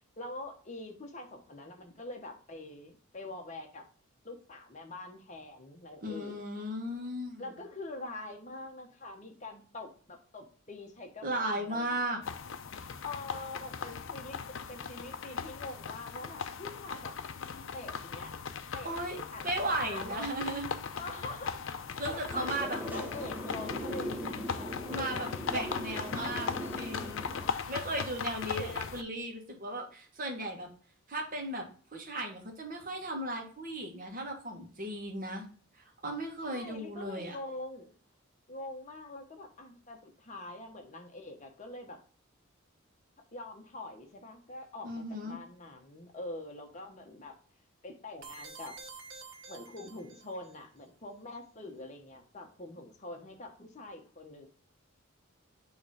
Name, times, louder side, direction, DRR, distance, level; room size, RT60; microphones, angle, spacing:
voice 1, 0.0-3.9 4.2-6.4 7.4-12.1 13.0-17.1 17.7-18.4 18.7-18.9 19.3-20.5 20.9-25.3 25.5-26.6 28.3-28.8 36.4-37.9 38.5-42.0 43.3-47.4 47.8-48.8 49.5-54.5, left 2 dB, 35° left, 2 dB, 1.1 m, -44 dB
voice 2, 6.0-7.4 11.2-12.2 18.8-20.7 22.0-22.8 24.9-26.5 26.8-27.2 27.7-30.7 31.1-31.6 31.9-35.4 35.8-37.4 44.8-45.4, right 1 dB, 40° right, 2 dB, 1.5 m, -36 dB
sound 1, 12.2-29.0, left 6 dB, 65° left, 0.5 m, -39 dB
sound 2, 22.3-27.5, equal, 10° right, 0.8 m, -40 dB
sound 3, 48.2-50.5, right 4 dB, 60° right, 1.1 m, -48 dB
6.9 x 3.2 x 4.8 m, 0.43 s
head